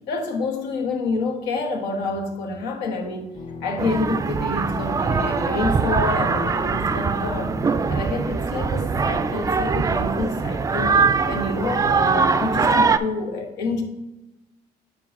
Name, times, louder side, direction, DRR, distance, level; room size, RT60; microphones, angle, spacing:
voice 1, 0.1-3.3 3.6-7.6 7.9-11.0 11.3-13.8, left 3 dB, 90° left, 2 dB, 1.3 m, -28 dB
sound 1, 3.3-11.3 11.9-12.4, left 4 dB, 25° left, 0.8 m, -41 dB
sound 2, 3.8-13.0, right 5 dB, 20° right, 0.3 m, -22 dB
8.4 x 3.1 x 5.3 m, 0.98 s
cardioid pair, 110°, 17 cm